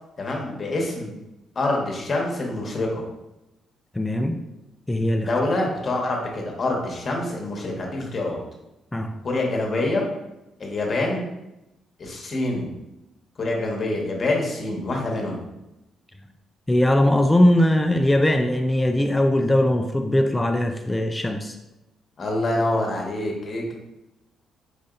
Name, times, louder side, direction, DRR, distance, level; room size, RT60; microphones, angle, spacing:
voice 1, 0.2-1.1 1.5-3.0 5.2-8.4 9.2-10.0 10.6-11.3 12.0-12.7 13.4-15.4 22.2-23.7, left 2 dB, 40° left, -1 dB, 1.2 m, -26 dB
voice 2, 3.9-4.4 4.9-5.3 8.9-9.1 16.7-21.6, left 1 dB, 10° left, 5 dB, 0.4 m, -20 dB
5.1 x 2.7 x 3.8 m, 0.94 s
cardioid pair, 90°, 0 cm